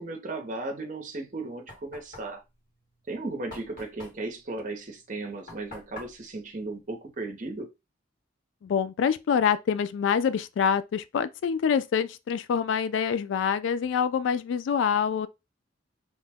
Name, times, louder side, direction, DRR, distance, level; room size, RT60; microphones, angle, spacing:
voice 1, 0.0-2.4 3.1-7.7, right 2 dB, 40° right, 0.7 m, -36 dB
Knock, 1.1-7.6, left 2 dB, 50° left, 1.4 m, -49 dB
voice 2, 8.6-15.3, left 7 dB, 85° left, 0.3 m, -26 dB
2.9 x 2.1 x 3.4 m
head